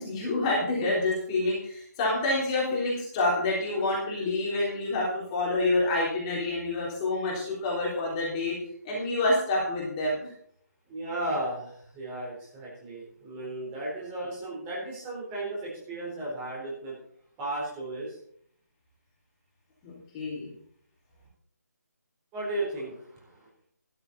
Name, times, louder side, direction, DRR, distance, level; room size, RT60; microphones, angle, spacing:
voice 1, 0.0-8.6 8.8-10.3 19.8-20.5, left 2 dB, 20° left, -5 dB, 3.5 m, -28 dB
voice 2, 10.9-17.0 17.4-18.2 22.3-23.5, right 1 dB, 15° right, -5 dB, 4.1 m, -35 dB
13.0 x 11.0 x 4.3 m, 0.64 s
figure-of-eight pair, 150°, 9 cm